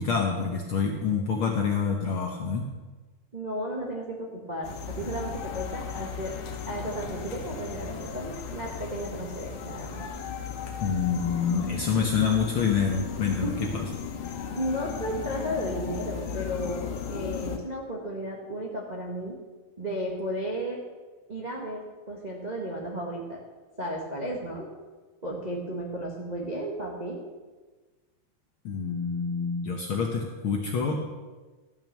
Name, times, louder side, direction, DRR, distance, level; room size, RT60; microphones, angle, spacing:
voice 1, 0.0-2.7 10.8-13.8 28.6-31.1, left 5 dB, 70° left, 2 dB, 1.3 m, -27 dB
voice 2, 3.3-6.3 6.7-10.1 13.3-13.7 14.4-16.8 17.1-19.4 19.8-20.8 21.3-23.4 23.8-24.7 25.2-27.2, equal, 55° right, -2 dB, 0.4 m, -34 dB
sound 1, 4.6-17.6, left 7 dB, 90° left, 2.7 m, -36 dB
12.5 x 6.1 x 7.4 m, 1.3 s
omnidirectional pair, 3.5 m